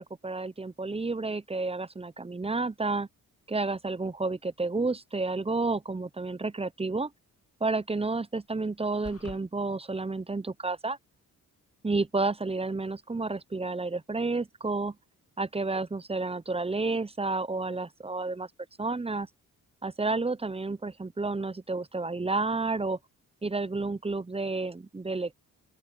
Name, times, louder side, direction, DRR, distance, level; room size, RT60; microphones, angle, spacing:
voice 1, 0.0-3.1 3.5-7.1 7.6-11.0 11.8-15.0 15.4-18.5 18.8-19.3 19.8-23.0 23.4-25.3, right 3 dB, 15° right, 0.7 m, -31 dB
sound 1, 9.0-9.4, left 4 dB, 35° left, 2.5 m, -43 dB
open air
supercardioid pair, 45°, 39 cm